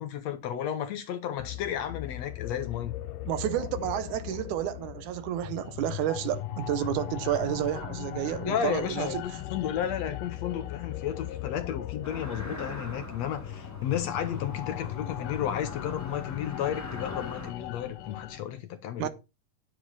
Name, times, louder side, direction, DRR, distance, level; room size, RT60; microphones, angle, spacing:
voice 1, 0.0-3.0 8.5-19.1, left 9 dB, 70° left, 1.8 m, -33 dB
sound 1, 1.4-18.4, left 13 dB, 90° left, 2.4 m, -38 dB
voice 2, 3.3-9.2 19.0-19.1, right 12 dB, 75° right, 2.2 m, -30 dB
sound 2, 12.0-17.5, equal, 10° left, 0.7 m, -43 dB
9.8 x 8.5 x 4.1 m
omnidirectional pair, 3.6 m